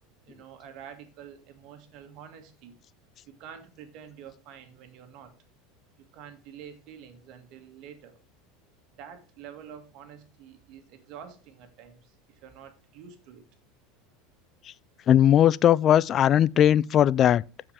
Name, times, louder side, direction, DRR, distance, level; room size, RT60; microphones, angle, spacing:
voice 1, 0.2-2.8 3.3-5.3 6.0-8.2 9.0-13.4, right 8 dB, 55° right, 2.0 m, -47 dB
voice 2, 15.1-17.4, left 10 dB, 40° left, 0.3 m, -19 dB
14.0 x 4.9 x 3.4 m
hypercardioid pair, 90°, 0 cm